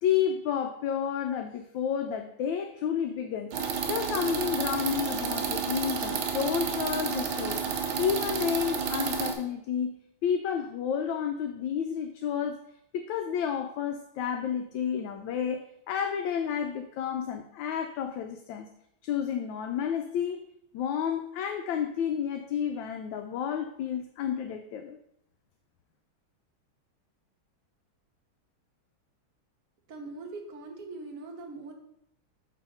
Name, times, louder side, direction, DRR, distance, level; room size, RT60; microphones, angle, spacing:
voice 1, 0.0-3.6 3.9-7.6 8.0-12.6 12.9-18.7 19.0-20.4 20.7-25.0, left 8 dB, 75° left, 6 dB, 1.2 m, -31 dB
sound 1, 3.5-9.3, right 6 dB, 80° right, 1.6 m, -31 dB
voice 2, 29.9-31.7, right 3 dB, 50° right, 3 dB, 1.3 m, -41 dB
6.3 x 4.1 x 5.5 m, 0.76 s
omnidirectional pair, 2.2 m